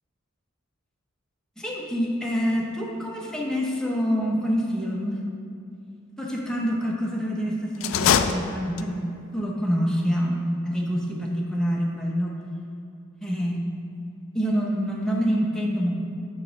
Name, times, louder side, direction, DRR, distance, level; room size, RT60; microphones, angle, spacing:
voice 1, 1.6-5.3 6.2-9.1 9.3-12.4 13.2-13.6 14.3-15.9, equal, 5° left, -3 dB, 0.8 m, -26 dB
sound 1, 7.8-9.1, left 7 dB, 80° left, 0.3 m, -23 dB
8.3 x 3.2 x 5.5 m, 2.5 s
head